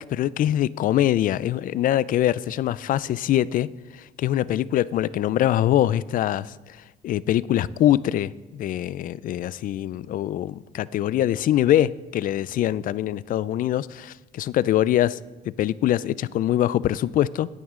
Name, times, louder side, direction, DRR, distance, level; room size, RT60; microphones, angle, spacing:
voice 1, 0.0-6.8 7.0-15.2 15.6-17.5, left 12 dB, 55° left, 0.4 m, -23 dB
17.0 x 9.3 x 3.7 m
cardioid pair, 110°, 17 cm